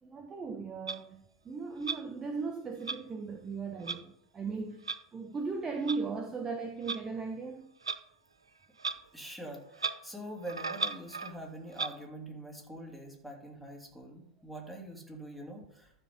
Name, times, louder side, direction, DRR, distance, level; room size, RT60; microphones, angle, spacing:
voice 1, 0.0-7.7, right 4 dB, 20° right, 6 dB, 1.0 m, -37 dB
Clock, 0.9-1.0 1.8-2.0 2.9-3.0 3.9-4.0 4.9-5.0 5.9-6.0 6.9-7.0 7.8-8.0 8.8-9.0 9.2-9.3 9.7-10.0 10.4-11.4 11.7-11.9, right 4 dB, 80° right, 0.5 m, -35 dB
voice 2, 9.1-15.9, right 1 dB, 5° right, 0 dB, 3.1 m, -44 dB
12.5 x 6.3 x 5.3 m, 0.75 s
figure-of-eight pair, 85°, 3 cm